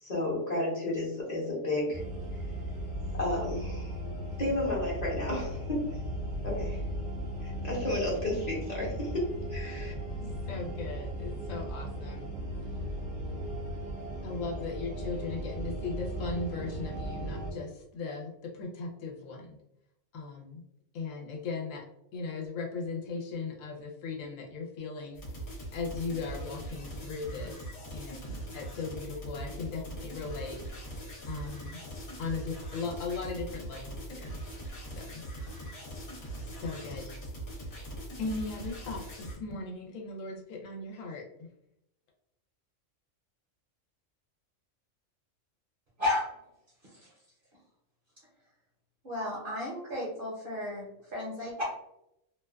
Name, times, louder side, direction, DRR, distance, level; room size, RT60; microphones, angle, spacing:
voice 1, 0.0-2.0 2.3-2.4 3.2-4.0 4.4-6.0 6.4-6.8 7.4-9.9, left 1 dB, 40° left, -5 dB, 0.8 m, -32 dB
sound 1, 1.9-17.5, right 1 dB, 10° right, 0.5 m, -37 dB
voice 2, 10.2-12.3 14.2-19.6 20.1-20.6 20.9-21.9 22.1-25.2 25.7-27.6 27.9-30.6 30.9-31.8 32.2-34.4 35.0-35.2 36.5-37.1 38.2-41.5, left 4 dB, 85° left, 1 dB, 1.0 m, -38 dB
sound 2, 25.1-39.4, right 1 dB, 70° left, 1.0 m, -41 dB
voice 3, 49.0-51.6, left 1 dB, 55° right, -4 dB, 0.7 m, -33 dB
2.5 x 2.2 x 2.3 m, 0.81 s
omnidirectional pair, 1.3 m